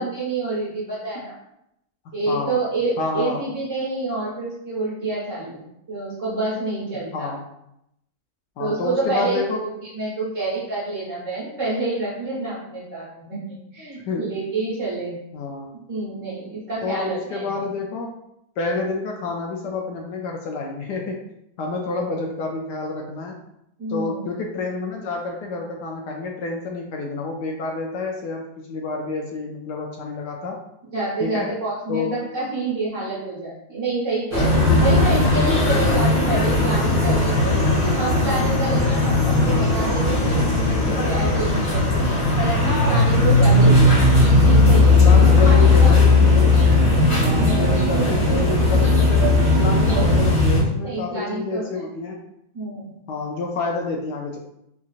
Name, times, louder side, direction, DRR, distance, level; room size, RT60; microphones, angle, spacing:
voice 1, 0.0-1.3 2.1-7.3 8.6-15.1 15.7-17.6 23.8-24.2 30.9-37.5 38.0-44.0 44.4-45.0 45.4-46.0 47.2-47.6 50.8-51.8 52.5-53.0, right 2 dB, 45° right, -8 dB, 1.4 m, -28 dB
voice 2, 2.3-2.6 3.0-3.4 7.1-7.4 8.6-9.6 14.1-14.3 15.3-15.8 16.8-18.2 18.6-21.2 21.6-23.4 23.9-30.6 31.2-31.5 31.9-32.2 34.4-34.8 35.8-36.0 45.0-52.2 53.1-54.4, left 3 dB, 75° left, 1 dB, 1.0 m, -29 dB
caminando por la calle, 34.3-50.6, left 3 dB, 40° left, 1.5 m, -17 dB
sound 1, 43.6-50.4, right 6 dB, 90° right, 1.4 m, -25 dB
4.5 x 2.7 x 2.4 m, 0.80 s
omnidirectional pair, 2.2 m